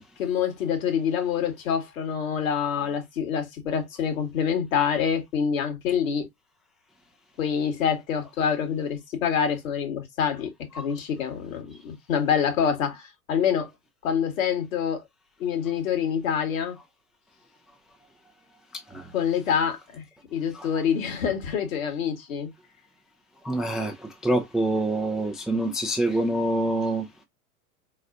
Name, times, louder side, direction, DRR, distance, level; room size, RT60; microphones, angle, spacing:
voice 1, 0.2-6.3 7.4-13.7 14.0-15.0 15.4-16.8 19.1-20.0 20.3-22.5, left 7 dB, 60° left, 2.3 m, -26 dB
voice 2, 23.4-23.9 24.2-27.0, right 1 dB, ahead, 0.4 m, -25 dB
4.8 x 4.0 x 2.5 m
figure-of-eight pair, 95°, 46 cm